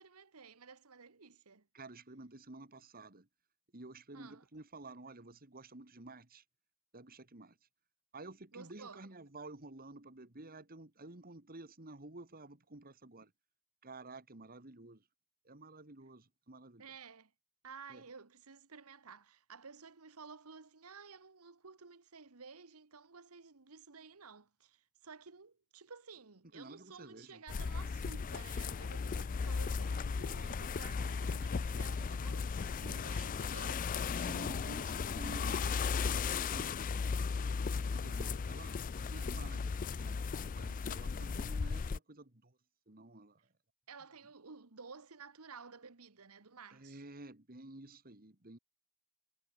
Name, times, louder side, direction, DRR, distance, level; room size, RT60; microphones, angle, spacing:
voice 1, 0.0-1.7 4.1-4.4 8.5-9.0 16.8-17.3 17.6-34.2 43.9-47.0, right 5 dB, 90° right, 1.4 m, -53 dB
voice 2, 1.7-3.3 3.7-6.4 6.9-7.6 8.1-13.3 13.8-15.0 15.4-16.9 17.9-18.0 26.5-27.4 34.2-36.8 37.7-42.6 42.9-43.5 46.7-48.6, right 2 dB, 40° right, 2.2 m, -52 dB
sound 1, 27.5-42.0, left 5 dB, 40° left, 0.4 m, -36 dB
head